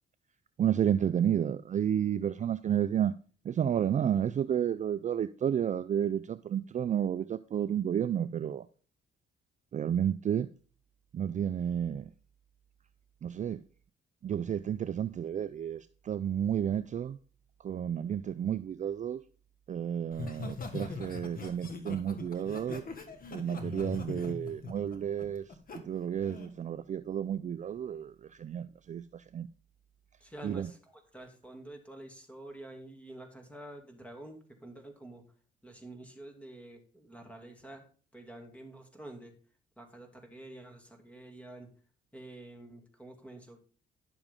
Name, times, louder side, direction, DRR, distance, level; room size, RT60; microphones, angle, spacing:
voice 1, 0.6-3.1 3.4-8.7 9.7-10.5 11.1-12.1 13.2-13.6 14.2-17.2 17.6-19.2 19.7-22.8 23.3-25.4 25.7-29.5 30.4-30.7, right 9 dB, 40° right, 0.4 m, -31 dB
Laughter, 20.1-25.8 26.2-26.5, left 3 dB, 45° left, 1.6 m, -41 dB
voice 2, 30.2-35.3 35.6-37.9 38.1-39.4 39.8-41.7 42.1-43.6, right 1 dB, 5° left, 2.5 m, -48 dB
11.0 x 7.0 x 3.7 m
cardioid pair, 90°, 20 cm